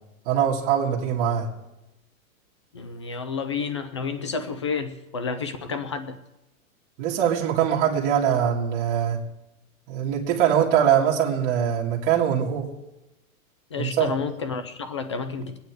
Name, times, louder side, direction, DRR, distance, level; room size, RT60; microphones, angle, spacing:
voice 1, 0.3-1.5 7.0-9.2 9.9-12.7 13.8-14.1, right 9 dB, 25° right, -3 dB, 2.0 m, -22 dB
voice 2, 2.7-6.2 13.7-15.6, left 5 dB, 20° left, 11 dB, 0.4 m, -30 dB
22.5 x 9.3 x 4.7 m, 0.97 s
supercardioid pair, 170°, 43 cm